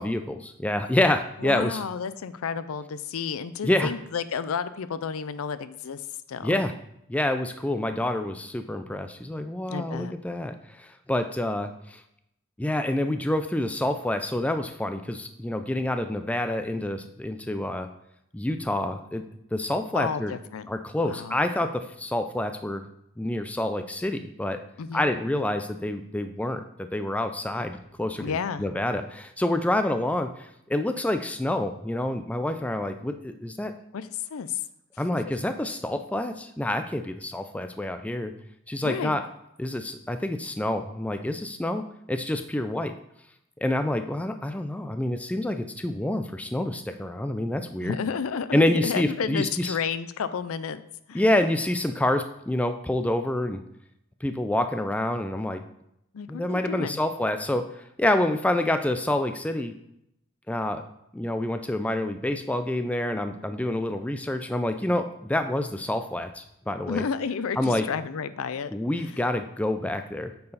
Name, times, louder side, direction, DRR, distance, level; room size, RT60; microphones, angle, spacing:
voice 1, 0.0-1.8 3.6-3.9 6.4-6.7 7.1-12.0 12.6-17.9 18.3-19.2 19.5-20.3 20.7-22.8 23.2-24.6 24.9-33.7 35.0-38.3 38.7-39.2 39.6-42.9 43.6-48.0 48.5-49.8 51.1-53.6 54.2-55.6 56.3-59.7 60.5-60.8 61.1-67.0 67.6-67.8 68.7-70.3, left 1 dB, 5° left, 8 dB, 0.3 m, -27 dB
voice 2, 1.4-6.0 6.3-6.6 9.7-10.1 19.9-20.7 21.0-21.4 24.8-25.1 28.2-28.7 33.9-34.6 38.8-39.2 47.8-50.8 51.1-51.2 56.1-57.0 66.9-69.1, left 6 dB, 75° left, 14 dB, 0.4 m, -31 dB
8.4 x 4.7 x 4.0 m, 0.79 s
head